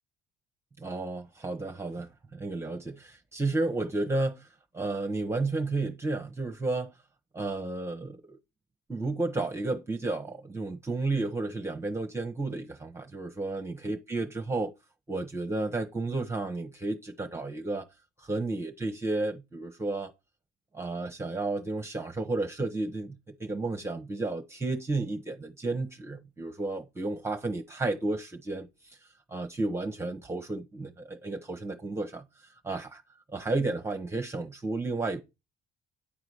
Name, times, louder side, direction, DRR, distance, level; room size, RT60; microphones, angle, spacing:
voice 1, 0.8-4.5 4.7-6.9 7.3-8.4 8.9-14.7 15.1-17.9 18.2-20.1 20.7-29.0 29.3-32.2 32.6-33.0 33.3-35.2, right 2 dB, 15° right, 1.0 m, -32 dB
10.0 x 3.9 x 4.8 m
cardioid pair, 110°, 17 cm